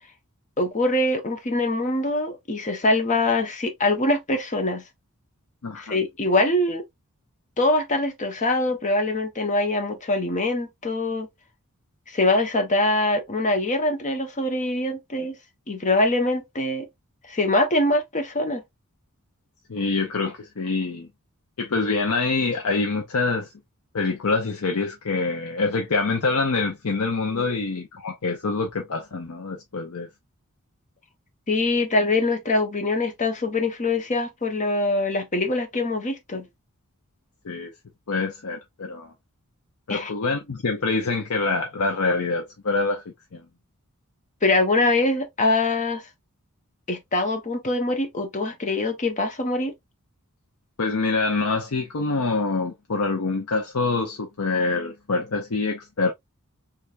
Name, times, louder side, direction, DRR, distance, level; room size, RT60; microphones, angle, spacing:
voice 1, 0.6-4.8 5.8-6.8 7.6-11.3 12.1-15.4 15.7-16.9 17.3-18.6 27.3-27.6 31.5-36.5 39.9-40.1 44.4-46.0 46.9-49.7, left 2 dB, 35° left, 0.9 m, -23 dB
voice 2, 5.6-6.0 19.7-21.1 21.6-23.5 23.9-30.1 37.4-37.7 38.1-39.1 39.9-43.0 43.3-43.4 50.8-56.1, left 3 dB, 75° left, 0.7 m, -25 dB
3.4 x 3.4 x 2.4 m
head